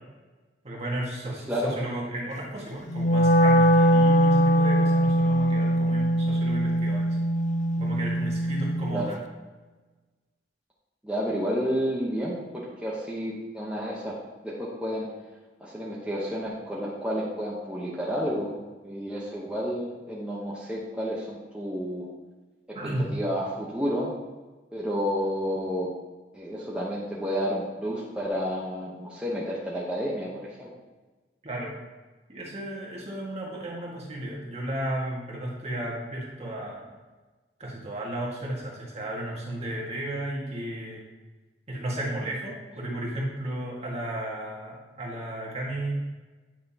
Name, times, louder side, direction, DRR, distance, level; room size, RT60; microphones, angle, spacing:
voice 1, 0.6-7.1 7.8-9.2 22.7-23.2 31.4-31.7 32.3-36.9 37.6-41.0 41.7-45.9, right 1 dB, 35° right, -4 dB, 1.8 m, -33 dB
Wind instrument woodwind instrument, 2.9-9.1, right 1 dB, 40° left, 0.4 m, -22 dB
voice 2, 11.0-14.2 14.4-15.1 15.6-18.6 18.8-22.1 22.7-22.8 23.1-24.1 24.7-25.9 26.3-30.7, equal, 5° right, -7 dB, 1.0 m, -30 dB
9.1 x 6.0 x 2.9 m, 1.2 s
head